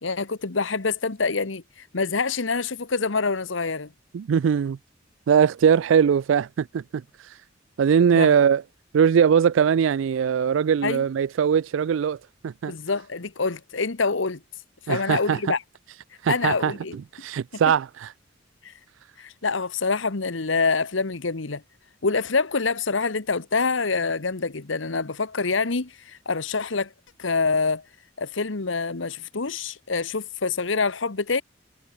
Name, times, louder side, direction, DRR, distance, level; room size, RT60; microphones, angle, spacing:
voice 1, 0.0-3.9 8.1-8.3 10.8-11.0 12.7-14.4 14.9-15.6 16.3-16.9 18.6-18.7 19.2-21.6 22.0-26.9 27.2-27.8 28.2-31.4, left 4 dB, 80° left, 1.2 m, -26 dB
voice 2, 4.1-4.8 5.3-7.4 7.8-8.6 8.9-12.2 12.4-12.7 14.9-15.5 16.2-16.7 17.1-18.1, right 7 dB, 80° right, 0.3 m, -21 dB
head